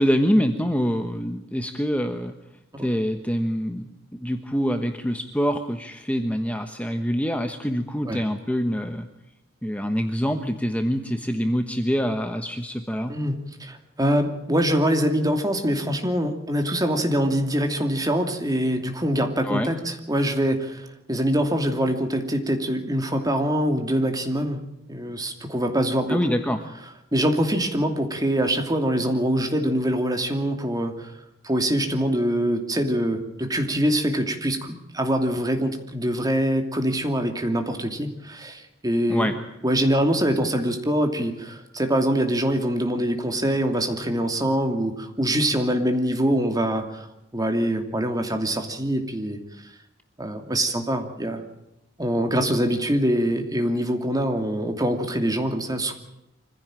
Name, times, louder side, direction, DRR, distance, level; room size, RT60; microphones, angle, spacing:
voice 1, 0.0-2.4 2.8-3.9 4.2-9.1 9.6-13.1 19.4-19.7 26.1-26.6 39.1-39.3, equal, 5° left, 6 dB, 1.2 m, -25 dB
voice 2, 13.1-24.6 24.9-26.3 27.1-31.1 31.4-39.3 39.6-47.1 47.3-49.4 50.2-51.4 52.0-55.9, equal, 20° right, 5 dB, 2.7 m, -24 dB
25.0 x 16.0 x 9.0 m, 0.87 s
head